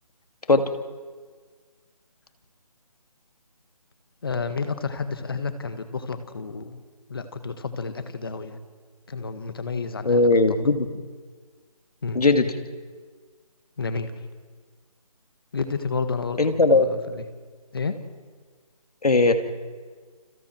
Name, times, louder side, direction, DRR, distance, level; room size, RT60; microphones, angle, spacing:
voice 1, 4.2-6.8 7.1-8.6 9.1-10.3 12.0-12.2 13.8-14.1 15.5-17.2 17.7-18.0, left 4 dB, 40° left, 9 dB, 1.7 m, -30 dB
voice 2, 10.1-10.9 12.1-12.5 16.4-16.9 19.0-19.3, left 3 dB, 85° left, 7 dB, 2.5 m, -18 dB
29.5 x 29.0 x 4.6 m, 1.5 s
figure-of-eight pair, 175°, 19 cm